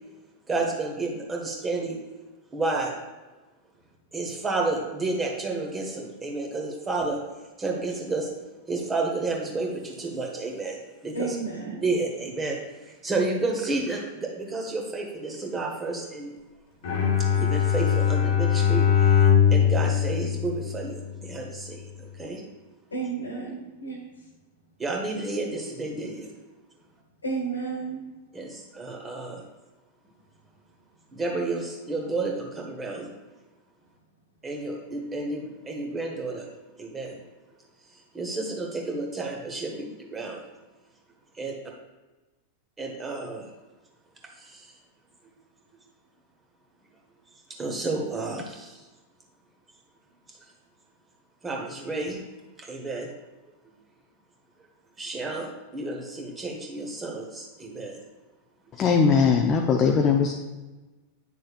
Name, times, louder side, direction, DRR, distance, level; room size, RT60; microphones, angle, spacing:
voice 1, 0.5-2.0 2.5-2.9 4.1-7.2 7.6-8.3 8.7-10.8 11.0-11.4 11.8-12.6 12.8-16.3 17.2-21.9 22.2-22.4 24.8-26.3 28.3-29.5 31.1-33.1 34.4-36.5 36.8-37.2 38.1-40.4 41.4-41.5 42.8-43.4 44.4-44.7 47.6-48.8 50.3-50.4 51.4-52.2 52.6-53.1 55.0-58.0, right 3 dB, 15° right, 0 dB, 1.4 m, -31 dB
voice 2, 11.1-11.8 22.9-24.0 27.2-28.0, right 4 dB, 75° left, 1 dB, 1.6 m, -31 dB
Bowed string instrument, 16.8-21.2, left 8 dB, 50° left, 1.4 m, -21 dB
voice 3, 58.8-60.3, left 5 dB, 30° left, 2 dB, 0.6 m, -20 dB
9.2 x 6.4 x 2.5 m, 1.2 s
figure-of-eight pair, 90°, 0 cm